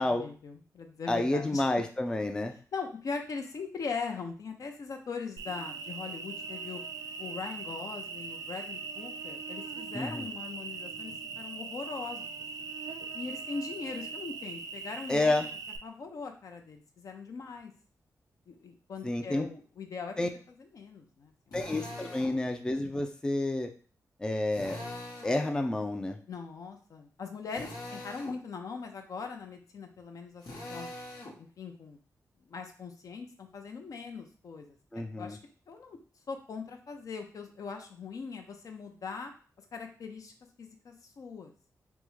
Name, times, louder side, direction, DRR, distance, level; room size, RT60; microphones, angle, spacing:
voice 1, 0.0-1.6 2.7-6.8 7.2-12.3 13.1-15.4 15.8-17.7 18.5-20.2 20.6-21.6 26.3-30.4 30.7-30.9 31.4-32.0 32.5-34.8 35.1-35.4 35.7-36.0 36.3-39.3 39.7-40.3 40.6-41.5, left 5 dB, 65° left, 4 dB, 0.5 m, -40 dB
voice 2, 1.1-2.5 9.9-10.3 15.1-15.5 19.0-19.5 20.2-20.3 21.5-23.7 24.2-24.8 25.2-26.2 34.9-35.4, left 2 dB, 10° left, 5 dB, 0.3 m, -29 dB
Cricket, 5.4-15.8, right 5 dB, 70° right, 0.4 m, -40 dB
Drill, 21.5-22.4 24.5-25.4 27.5-28.4 30.4-31.4, left 1 dB, 85° left, 0.9 m, -42 dB
3.4 x 2.1 x 3.1 m, 0.40 s
cardioid pair, 90°, 6 cm